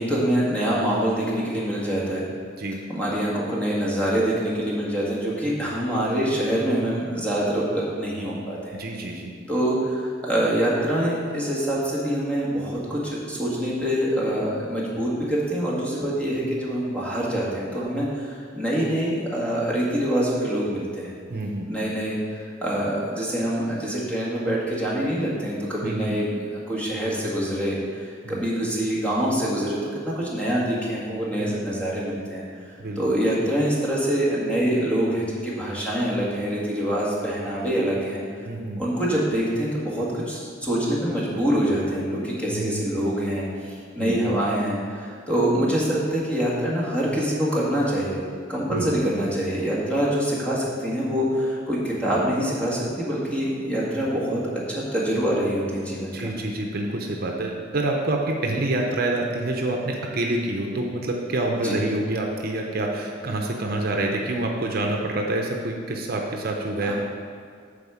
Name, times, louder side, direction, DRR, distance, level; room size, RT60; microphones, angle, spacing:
voice 1, 0.0-2.3 2.9-8.8 9.5-21.2 21.7-26.3 26.5-29.8 30.0-32.4 33.0-38.2 38.8-48.2 48.5-54.4 54.7-56.3 61.4-61.8 66.8-66.9, right 1 dB, 5° left, -6 dB, 1.8 m, -25 dB
voice 2, 8.7-9.3 21.3-21.7 25.8-26.2 28.2-28.5 31.4-31.8 32.8-33.2 38.4-38.8 42.5-42.9 44.0-44.2 48.7-49.0 56.1-66.9, right 2 dB, 55° right, 1 dB, 0.8 m, -27 dB
8.5 x 4.2 x 7.1 m, 2.2 s
head